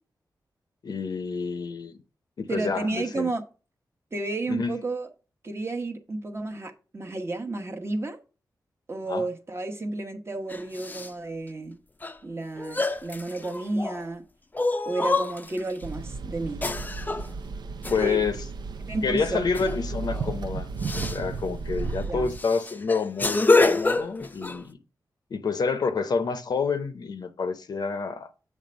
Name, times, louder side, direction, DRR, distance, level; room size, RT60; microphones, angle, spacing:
voice 1, 0.8-2.0 2.4-3.3 4.5-4.8 9.1-9.3 17.9-18.3 19.0-20.7 20.9-24.8 25.3-28.3, left 5 dB, 65° left, 0.7 m, -28 dB
voice 2, 2.5-3.4 4.1-5.1 5.4-8.2 8.9-11.8 12.2-14.2 14.8-16.6 18.0-18.2 18.9-19.5 22.1-22.3, right 2 dB, 35° right, 1.0 m, -31 dB
sound 1, 10.5-11.1 12.0-12.1 12.6-14.0 14.5-15.7 16.6-17.3 17.8-18.2 19.5-19.8 20.1-20.3 20.8-21.2 21.8-21.9 22.3-24.6, left 3 dB, 25° left, 0.5 m, -26 dB
sound 2, 15.8-22.4, right 4 dB, 80° right, 0.5 m, -34 dB
7.2 x 3.3 x 5.2 m
cardioid pair, 70°, 7 cm